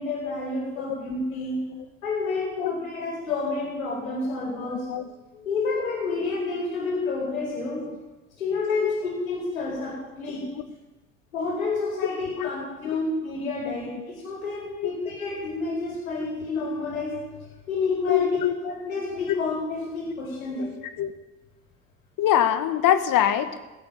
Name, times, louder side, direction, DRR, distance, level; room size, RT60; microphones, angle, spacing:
voice 1, 0.0-1.6 2.0-4.9 5.3-7.8 8.4-10.4 11.3-17.1 17.7-18.3 18.6-20.7, left 3 dB, 90° left, -2 dB, 4.2 m, -29 dB
voice 2, 4.7-5.1 8.8-8.9 12.4-12.5 12.8-13.0 13.6-13.8 14.8-14.9 18.1-18.5 19.3-19.4 21.0-21.1 22.2-23.5, left 11 dB, 55° left, 11 dB, 1.2 m, -23 dB
15.5 x 8.7 x 7.2 m, 1.1 s
hypercardioid pair, 65°, 40 cm